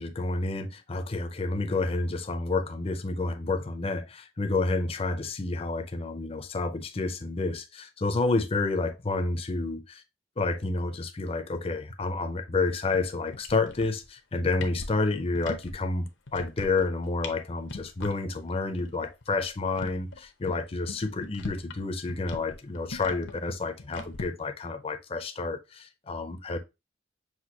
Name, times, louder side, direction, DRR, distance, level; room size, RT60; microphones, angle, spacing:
voice 1, 0.0-9.8 10.4-26.6, left 3 dB, 30° left, 0.5 m, -29 dB
sound 1, 12.9-13.1 13.3-14.1 14.4-15.7 16.1-16.9 17.2-17.4 17.6-18.1 18.5-18.6 18.8-18.9 19.2-21.8 22.1-24.2, left 3 dB, 75° left, 0.7 m, -39 dB
6.0 x 2.6 x 2.7 m
head